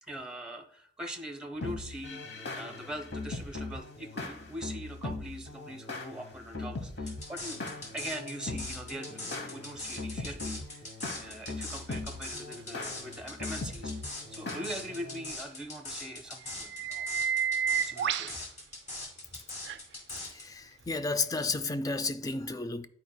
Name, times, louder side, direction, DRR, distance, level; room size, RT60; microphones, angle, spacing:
voice 1, 0.0-7.6 7.9-10.9 11.2-13.9 14.3-17.1 17.8-18.5, right 1 dB, 5° right, 0.7 m, -42 dB
sound 1, 1.6-15.3, left 3 dB, 65° left, 1.0 m, -40 dB
sound 2, 7.1-20.4, left 2 dB, 40° left, 2.2 m, -41 dB
sound 3, 12.0-12.1 16.0-16.1 16.5-18.4 19.6-19.8 21.4-21.5, right 8 dB, 70° right, 0.4 m, -30 dB
voice 2, 20.3-22.9, left 3 dB, 20° left, 0.4 m, -32 dB
11.0 x 4.7 x 2.2 m
head